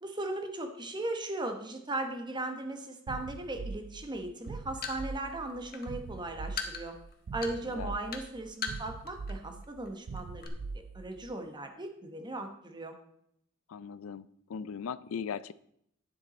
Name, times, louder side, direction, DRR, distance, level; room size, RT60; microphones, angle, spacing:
voice 1, 0.0-6.9 7.3-10.5 10.9-13.0, right 2 dB, 20° right, 6 dB, 1.1 m, -37 dB
sound 1, 3.1-11.3, right 4 dB, 65° right, 0.4 m, -42 dB
sound 2, 4.4-9.3 9.6-9.9 10.2-10.5, left 5 dB, 50° left, 1.2 m, -39 dB
voice 2, 13.7-15.5, left 6 dB, 85° left, 18 dB, 0.4 m, -39 dB
10.0 x 7.6 x 4.2 m, 0.72 s
head